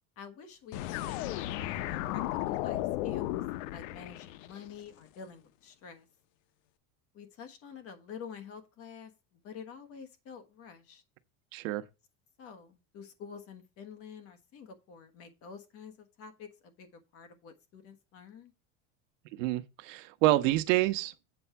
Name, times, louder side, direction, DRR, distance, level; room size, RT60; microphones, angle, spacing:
voice 1, 0.2-3.4 3.7-6.1 7.1-11.0 12.4-18.5, left 6 dB, 35° left, 1.4 m, -48 dB
sound 1, 0.7-4.7, left 14 dB, 85° left, 0.7 m, -34 dB
voice 2, 11.5-11.8 19.3-21.1, right 16 dB, 80° right, 1.0 m, -27 dB
8.0 x 4.4 x 7.0 m
cardioid pair, 175°, 38 cm